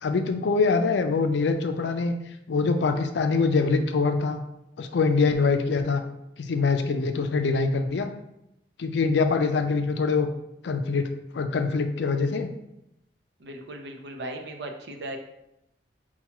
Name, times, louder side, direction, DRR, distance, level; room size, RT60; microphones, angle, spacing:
voice 1, 0.0-2.2 2.5-4.4 4.8-6.0 6.4-8.1 8.8-10.3 10.6-11.1 11.3-12.5, left 4 dB, 75° left, 7 dB, 0.4 m, -24 dB
voice 2, 13.4-15.2, right 1 dB, 70° right, 4 dB, 0.6 m, -37 dB
5.7 x 2.3 x 2.9 m, 0.86 s
head